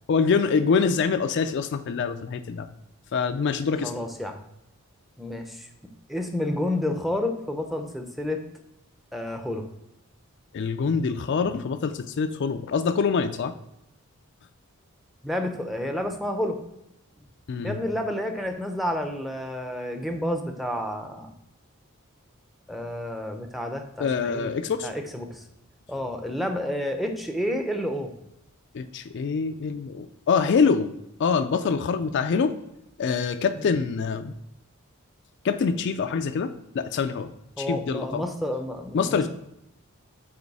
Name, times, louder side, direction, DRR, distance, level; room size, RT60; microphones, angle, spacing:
voice 1, 0.1-2.7 3.1-3.9 10.5-13.5 17.5-17.8 24.0-24.9 28.7-30.9 31.2-32.6 33.0-34.3 35.4-37.3 37.6-38.2 38.9-39.3, left 5 dB, 55° left, 9 dB, 0.4 m, -25 dB
voice 2, 3.8-4.4 5.2-5.7 6.1-8.4 9.1-9.6 15.2-16.6 17.6-21.3 22.7-24.5 24.8-25.4 25.9-28.1 33.6-33.7 37.6-39.3, left 1 dB, ahead, 5 dB, 0.6 m, -30 dB
8.0 x 3.1 x 4.7 m, 0.82 s
head